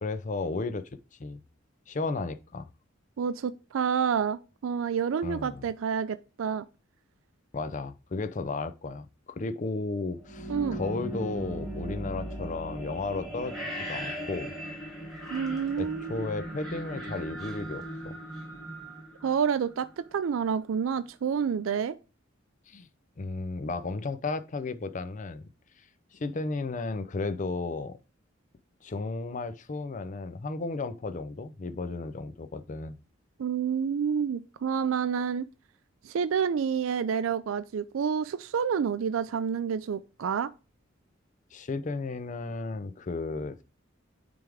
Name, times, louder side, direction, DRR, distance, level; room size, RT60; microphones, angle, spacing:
voice 1, 0.0-0.9 1.2-1.4 1.9-2.7 5.2-5.6 7.5-13.6 13.9-14.5 15.8-18.2 22.7-22.9 23.2-25.5 26.1-28.0 28.8-33.0 41.5-43.6, left 3 dB, 40° left, 0.5 m, -34 dB
voice 2, 3.2-6.7 10.5-10.8 15.3-16.3 19.2-21.9 33.4-35.5 36.0-40.5, right 7 dB, 80° right, 0.4 m, -29 dB
sound 1, 10.2-20.0, right 1 dB, ahead, 2.4 m, -38 dB
9.4 x 3.5 x 3.4 m
head